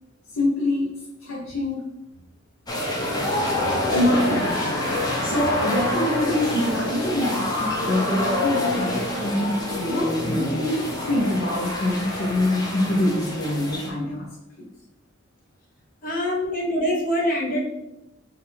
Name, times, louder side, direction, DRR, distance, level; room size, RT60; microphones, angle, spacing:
voice 1, 0.4-0.9 1.2-1.9 3.9-14.7, left 1 dB, 80° left, -3 dB, 0.8 m, -25 dB
sound 1, 2.7-13.9, left 1 dB, 20° left, 0.8 m, -26 dB
voice 2, 16.0-17.7, equal, 45° left, -3 dB, 1.0 m, -24 dB
5.7 x 2.5 x 3.4 m, 0.95 s
head